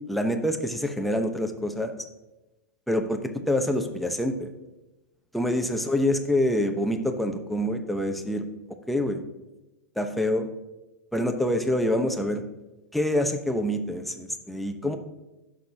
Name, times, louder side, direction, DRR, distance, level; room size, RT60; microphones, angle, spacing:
voice 1, 0.1-1.9 2.9-3.2 3.5-4.5 5.3-8.4 8.9-9.2 10.0-10.5 11.1-12.4 12.9-15.0, left 1 dB, ahead, 5 dB, 0.9 m, -26 dB
16.5 x 6.4 x 2.8 m, 1.0 s
hypercardioid pair, 120°, 9 cm